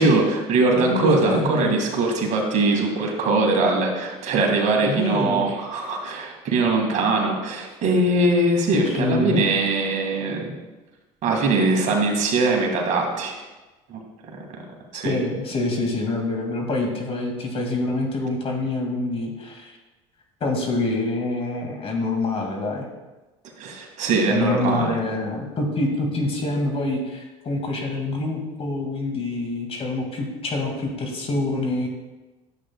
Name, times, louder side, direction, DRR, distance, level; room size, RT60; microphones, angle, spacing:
voice 1, 0.0-10.5 11.2-13.4 13.9-14.4 14.9-15.2 23.6-25.0, right 2 dB, 55° right, 1 dB, 2.0 m, -21 dB
voice 2, 0.7-1.7 4.9-5.4 8.7-9.4 15.0-19.7 20.4-22.9 24.3-31.9, left 2 dB, 40° left, 1 dB, 2.1 m, -26 dB
11.0 x 8.2 x 2.3 m, 1.1 s
supercardioid pair, 90°, 16 cm